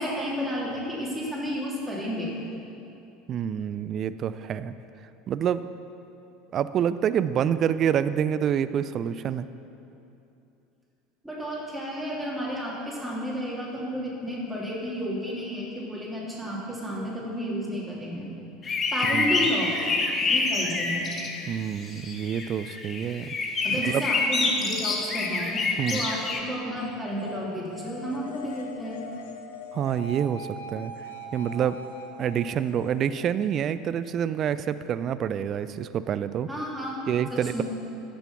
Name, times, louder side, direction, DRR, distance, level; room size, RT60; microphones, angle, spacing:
voice 1, 0.0-2.3 11.2-18.3 18.9-19.7 20.3-21.1 23.6-25.6 25.9-29.0 36.5-37.1 37.3-37.6, equal, 5° right, -5 dB, 3.3 m, -32 dB
voice 2, 3.3-4.7 5.3-5.7 6.5-9.5 19.1-19.5 21.5-23.4 23.7-24.1 25.8-26.1 29.7-30.9 31.3-31.8 32.2-36.5 37.1-37.6, right 9 dB, 40° right, 14 dB, 0.4 m, -27 dB
sound 1, 18.6-21.5 21.9-26.4, left 3 dB, 30° left, 1.3 m, -27 dB
sound 2, 26.8-34.3, left 1 dB, 70° left, 0.8 m, -42 dB
14.5 x 6.9 x 5.9 m, 2.8 s
figure-of-eight pair, 70°, 0 cm